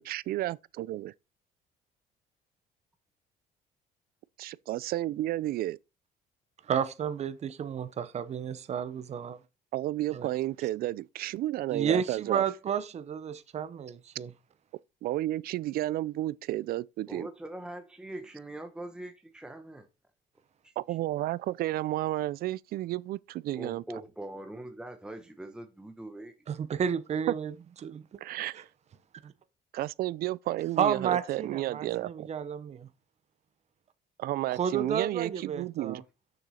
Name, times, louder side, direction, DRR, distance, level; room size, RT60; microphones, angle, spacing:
voice 1, 0.0-1.1 4.4-5.8 9.7-12.4 15.0-17.3 20.8-23.8 27.3-27.4 28.2-28.7 29.7-32.3 34.2-36.0, right 15 dB, 65° right, 0.4 m, -32 dB
voice 2, 6.7-9.4 10.1-10.3 11.7-14.3 26.5-27.5 27.8-28.0 28.5-28.6 29.2-29.3 30.8-32.9 34.5-36.0, right 8 dB, 40° right, 0.8 m, -31 dB
voice 3, 17.1-19.9 20.6-20.7 23.5-26.3, right 1 dB, 5° right, 0.9 m, -42 dB
6.4 x 6.2 x 4.2 m
cardioid pair, 110°, 17 cm